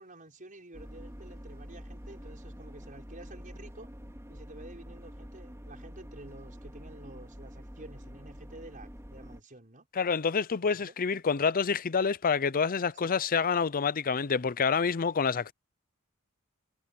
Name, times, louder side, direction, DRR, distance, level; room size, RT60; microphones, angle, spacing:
voice 1, 0.0-3.9 4.3-9.9 10.7-10.9 12.9-13.1, right 2 dB, 40° right, 6.2 m, -50 dB
sound 1, 0.7-9.4, equal, 15° right, 3.4 m, -46 dB
voice 2, 9.9-15.5, left 5 dB, 40° left, 0.6 m, -27 dB
head